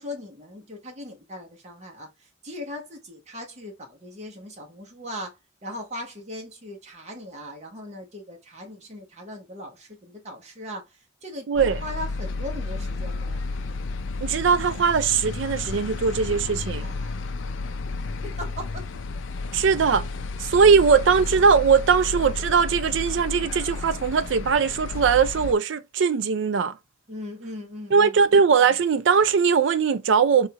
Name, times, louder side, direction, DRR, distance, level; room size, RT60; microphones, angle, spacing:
voice 1, 0.0-13.6 16.7-17.6 18.0-18.9 27.1-28.2, left 1 dB, 35° right, 1.1 m, -39 dB
voice 2, 11.5-11.8 14.2-16.9 19.5-20.0 20.4-26.8 27.9-30.5, right 6 dB, 75° right, 0.4 m, -20 dB
sound 1, 11.6-25.5, left 3 dB, 80° left, 0.4 m, -32 dB
3.7 x 2.4 x 2.8 m
head